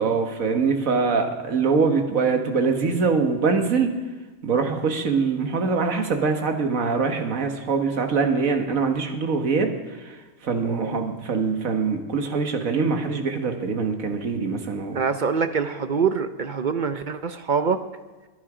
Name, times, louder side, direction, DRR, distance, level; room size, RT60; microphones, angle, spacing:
voice 1, 0.0-3.9 4.4-9.7 10.0-10.1 10.4-15.0, right 4 dB, 65° right, 5 dB, 1.8 m, -23 dB
voice 2, 10.6-11.0 14.9-17.8, right 5 dB, 50° right, 9 dB, 0.5 m, -25 dB
22.0 x 10.5 x 5.0 m, 1.2 s
omnidirectional pair, 1.5 m